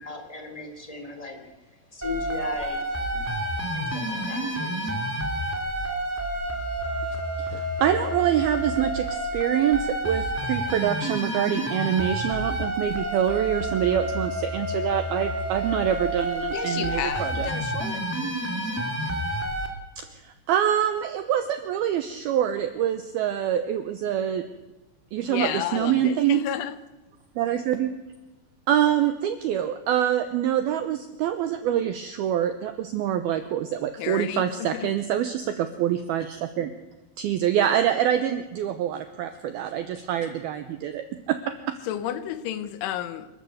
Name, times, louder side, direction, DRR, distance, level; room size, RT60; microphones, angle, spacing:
voice 1, 0.0-1.4 1.7-2.9 3.1-3.2 3.7-4.8, left 3 dB, 10° left, 2.0 m, -37 dB
sound 1, 2.0-19.7, right 1 dB, 5° right, 1.2 m, -29 dB
voice 2, 7.4-17.5 20.0-24.4 25.1-26.4 27.4-28.0 28.7-36.7 37.2-41.8, right 10 dB, 85° right, 2.2 m, -25 dB
voice 3, 16.5-18.0 25.2-26.8 34.0-34.9 41.9-43.3, left 11 dB, 80° left, 3.5 m, -31 dB
27.5 x 12.5 x 8.0 m
omnidirectional pair, 5.6 m